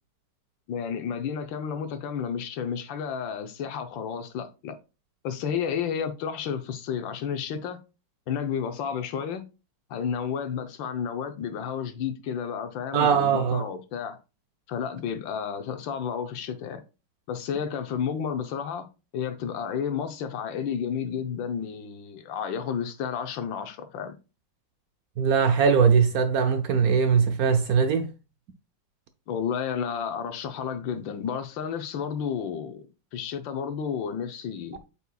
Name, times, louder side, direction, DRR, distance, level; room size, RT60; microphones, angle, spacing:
voice 1, 0.7-4.8 5.2-7.8 8.3-9.4 9.9-14.2 14.7-16.8 17.3-18.9 19.1-24.1 29.3-32.9 33.1-34.8, left 7 dB, 85° left, 1.6 m, -31 dB
voice 2, 12.9-13.7 25.2-28.1, right 6 dB, 70° right, 0.9 m, -21 dB
8.3 x 5.5 x 2.3 m
omnidirectional pair, 2.0 m